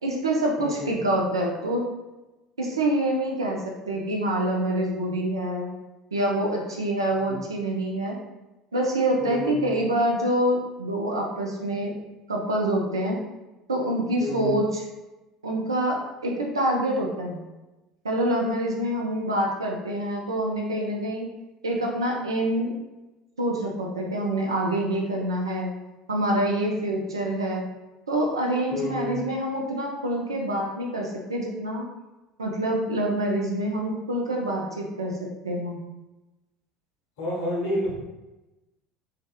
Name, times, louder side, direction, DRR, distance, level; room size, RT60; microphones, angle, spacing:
voice 1, 0.0-1.9 2.6-5.7 6.1-8.2 8.7-12.0 12.3-13.2 13.7-14.8 15.4-17.4 18.0-21.3 21.6-22.7 23.4-25.7 26.1-27.7 28.1-31.9 32.4-35.8, right 1 dB, 85° right, -1 dB, 0.4 m, -26 dB
voice 2, 0.6-1.0 7.3-7.4 9.2-9.7 14.2-14.6 28.7-29.2 37.2-37.9, left 1 dB, 65° left, -5 dB, 0.9 m, -30 dB
2.6 x 2.1 x 2.2 m, 1.0 s
figure-of-eight pair, 70°, 2 cm